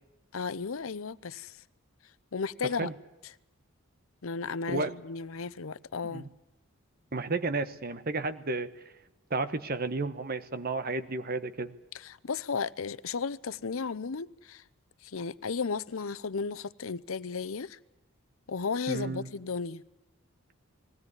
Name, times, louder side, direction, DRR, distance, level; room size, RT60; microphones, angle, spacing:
voice 1, 0.3-1.6 2.3-2.9 4.2-6.3 11.9-14.6 15.0-17.8 18.5-19.8, left 5 dB, 80° left, 0.7 m, -34 dB
voice 2, 7.1-8.7 9.3-11.7 18.9-19.3, right 3 dB, 45° right, 1.3 m, -32 dB
20.5 x 16.5 x 9.6 m
head